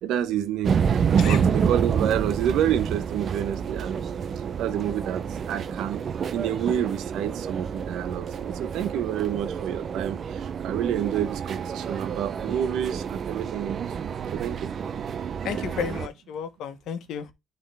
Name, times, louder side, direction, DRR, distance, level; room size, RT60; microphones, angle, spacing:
voice 1, 0.0-4.0 4.6-6.0 6.3-14.7, right 10 dB, 90° right, 0.9 m, -29 dB
sound 1, 0.6-16.1, right 7 dB, 55° right, 0.6 m, -28 dB
voice 2, 15.4-17.3, left 7 dB, 80° left, 1.2 m, -32 dB
10.5 x 3.8 x 3.4 m
cardioid pair, 90°, 0 cm